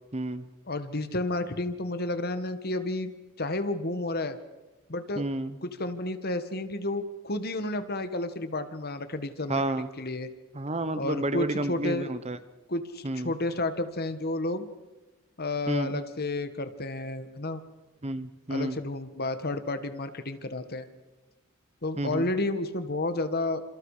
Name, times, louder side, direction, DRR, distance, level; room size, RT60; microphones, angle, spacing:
voice 1, 0.1-0.4 5.2-5.6 9.5-9.9 10.5-12.4 13.0-13.3 15.7-16.0 18.0-18.8 22.0-22.3, right 1 dB, 30° right, 13 dB, 1.0 m, -30 dB
voice 2, 0.7-3.1 3.4-4.4 4.9-5.2 5.6-10.3 10.9-12.1 12.7-14.7 15.4-17.6 18.5-20.9 21.8-23.6, left 2 dB, 45° left, 10 dB, 1.7 m, -31 dB
29.0 x 27.0 x 5.0 m, 1.2 s
head